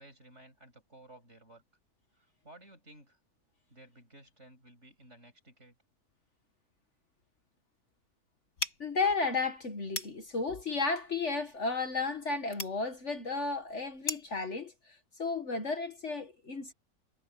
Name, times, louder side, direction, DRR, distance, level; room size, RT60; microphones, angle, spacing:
voice 1, 0.0-1.6 2.2-3.2 3.7-5.7, right 1 dB, 45° right, 8.6 m, -56 dB
sound 1, 8.6-14.4, left 2 dB, 65° left, 5.7 m, -42 dB
voice 2, 8.8-16.7, left 4 dB, 50° left, 1.9 m, -33 dB
omnidirectional pair, 1.6 m